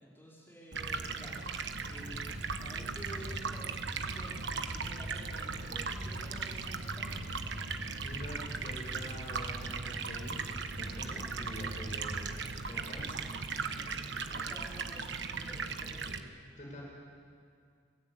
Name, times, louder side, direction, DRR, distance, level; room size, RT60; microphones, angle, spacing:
voice 1, 0.0-2.2 2.6-7.3 12.9-13.3 13.7-16.1, equal, 10° left, -5 dB, 4.5 m, -51 dB
Stream, 0.7-16.2, right 5 dB, 65° right, 1.2 m, -38 dB
sound 1, 2.1-12.3, equal, 55° left, 4.3 m, -45 dB
voice 2, 8.0-12.3 12.6-13.2 16.1-16.3 16.6-16.8, equal, 40° left, -2 dB, 5.6 m, -46 dB
27.5 x 17.0 x 8.3 m, 2.2 s
head